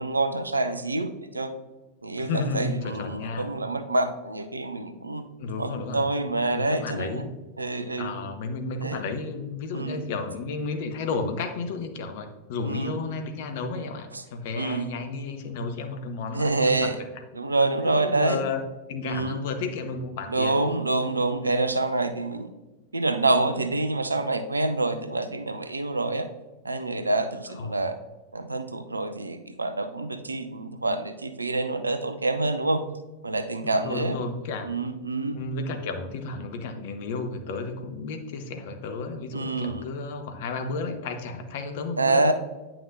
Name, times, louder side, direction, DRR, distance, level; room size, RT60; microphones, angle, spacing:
voice 1, 0.0-1.5 2.0-5.2 5.6-7.2 7.6-8.1 8.8-9.0 9.7-10.0 12.6-12.9 14.6-14.9 16.3-17.0 17.4-18.4 19.1-19.4 20.3-22.5 22.9-26.3 26.6-27.9 28.3-32.8 33.2-34.2 34.6-35.4 39.3-39.8 42.0-42.3, right 2 dB, 80° right, 9 dB, 0.5 m, -26 dB
voice 2, 2.2-3.5 5.4-6.0 6.5-7.3 8.0-16.9 17.8-18.6 18.9-20.7 27.5-27.9 33.6-34.7 35.3-42.3, left 3 dB, 50° left, 7 dB, 0.8 m, -32 dB
9.1 x 5.9 x 2.6 m, 1.2 s
figure-of-eight pair, 90°, 0 cm